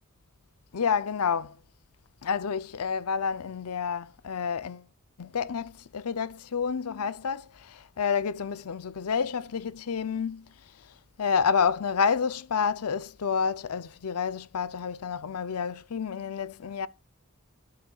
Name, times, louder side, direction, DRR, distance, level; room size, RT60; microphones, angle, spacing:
voice 1, 0.7-1.6 2.2-4.9 5.2-10.4 11.2-16.9, left 6 dB, 85° left, 0.6 m, -29 dB
12.0 x 7.8 x 2.4 m
head